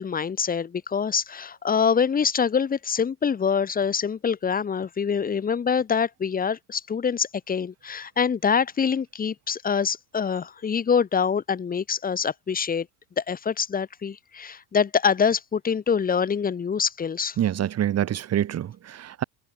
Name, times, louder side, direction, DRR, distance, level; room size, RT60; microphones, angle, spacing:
voice 1, 0.0-12.9 13.2-17.4, left 6 dB, 25° left, 1.2 m, -25 dB
voice 2, 17.4-19.2, right 11 dB, 40° right, 3.0 m, -26 dB
supercardioid pair, 105°, 37 cm